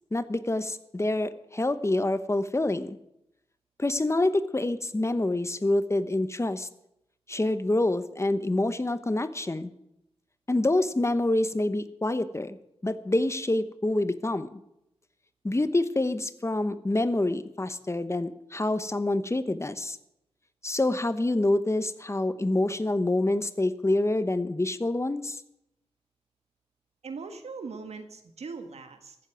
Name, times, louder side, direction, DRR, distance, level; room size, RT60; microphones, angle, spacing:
voice 1, 0.1-3.0 3.8-6.7 7.3-9.7 10.5-12.6 12.8-14.5 15.4-20.0 20.6-25.4, left 2 dB, 25° left, 12 dB, 1.0 m, -27 dB
voice 2, 27.0-29.2, right 4 dB, 85° right, 7 dB, 1.7 m, -40 dB
15.0 x 7.4 x 9.2 m, 0.82 s
cardioid pair, 55°, 11 cm